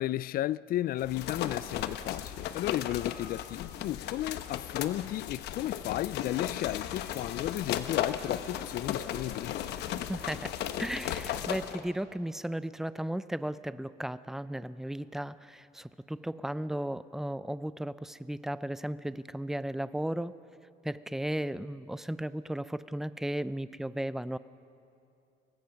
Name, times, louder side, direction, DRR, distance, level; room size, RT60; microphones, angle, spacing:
voice 1, 0.0-9.5, left 14 dB, 60° left, 0.4 m, -34 dB
sound 1, 1.0-11.8, left 10 dB, 80° left, 1.0 m, -36 dB
voice 2, 10.1-10.5 10.8-20.3 20.8-24.4, right 1 dB, ahead, 0.5 m, -35 dB
24.5 x 19.5 x 5.8 m
cardioid pair, 110°, 17 cm